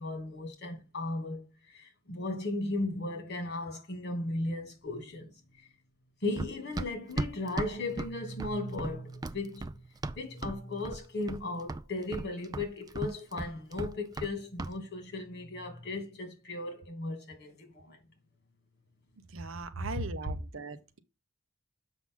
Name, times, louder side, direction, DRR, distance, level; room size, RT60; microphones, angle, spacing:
voice 1, 0.0-5.4 6.2-9.9 10.2-18.0 19.8-19.9, left 2 dB, 50° left, 2.4 m, -36 dB
Run, 6.4-10.6 10.9-11.4 11.7-14.3 14.6-14.8, right 2 dB, 20° right, 0.3 m, -36 dB
voice 2, 19.3-21.0, right 3 dB, 65° right, 0.8 m, -39 dB
7.3 x 5.6 x 3.8 m
head